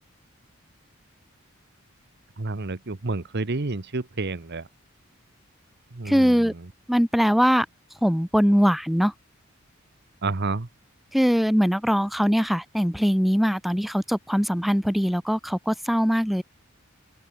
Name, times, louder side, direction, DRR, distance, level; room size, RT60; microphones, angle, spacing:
voice 1, 2.4-4.7 5.9-6.7 10.2-10.7, right 3 dB, 55° right, 1.1 m, -30 dB
voice 2, 6.1-6.5 6.9-7.7 8.0-9.1 11.1-16.4, equal, ahead, 0.5 m, -21 dB
open air
head